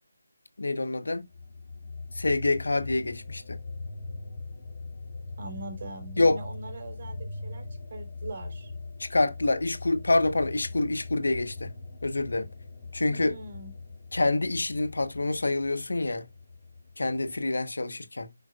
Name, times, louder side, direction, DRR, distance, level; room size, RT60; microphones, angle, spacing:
voice 1, 0.6-1.2 2.1-3.6 6.2-6.4 9.0-11.7 12.0-12.5 12.9-13.4 14.1-16.3 17.0-18.3, left 2 dB, 70° left, 1.2 m, -26 dB
sound 1, 1.3-17.4, left 3 dB, 30° left, 2.4 m, -41 dB
voice 2, 5.4-7.6 7.9-8.7 13.1-13.7, right 2 dB, 40° right, 4.0 m, -41 dB
11.0 x 5.2 x 2.5 m
figure-of-eight pair, 160°, 0 cm